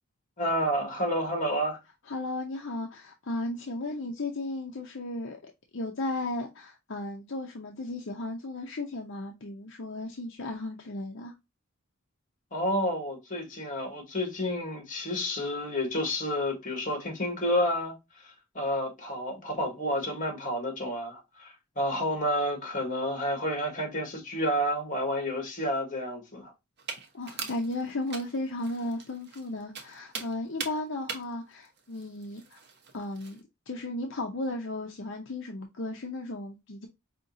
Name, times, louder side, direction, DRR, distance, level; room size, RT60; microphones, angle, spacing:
voice 1, 0.4-1.8 12.5-26.5, equal, 40° left, 1.7 m, -30 dB
voice 2, 2.1-11.3 27.1-32.6 32.9-33.4 33.7-36.9, left 2 dB, 65° left, 0.7 m, -35 dB
sound 1, 26.8-33.4, right 5 dB, 55° right, 1.0 m, -42 dB
5.2 x 2.8 x 2.6 m
head